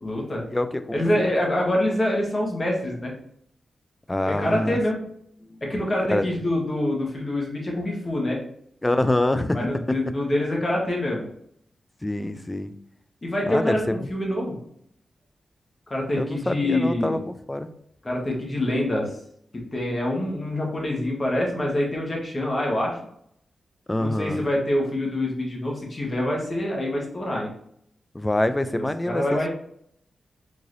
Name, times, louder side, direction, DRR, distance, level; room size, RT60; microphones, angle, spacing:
voice 1, 0.0-0.4 0.9-3.1 4.4-5.0 5.6-8.4 9.5-11.3 13.2-14.6 15.9-17.2 18.0-19.1 19.7-23.0 24.0-27.5 28.7-29.5, left 1 dB, 40° left, -2 dB, 1.3 m, -25 dB
voice 2, 0.5-1.3 4.1-4.8 6.1-6.2 8.8-9.7 12.0-12.7 13.5-14.1 16.2-17.2 17.5-17.7 23.9-24.4 28.1-29.5, left 1 dB, 20° left, 10 dB, 0.3 m, -25 dB
3.7 x 3.1 x 2.6 m, 0.69 s
cardioid pair, 50°, 0 cm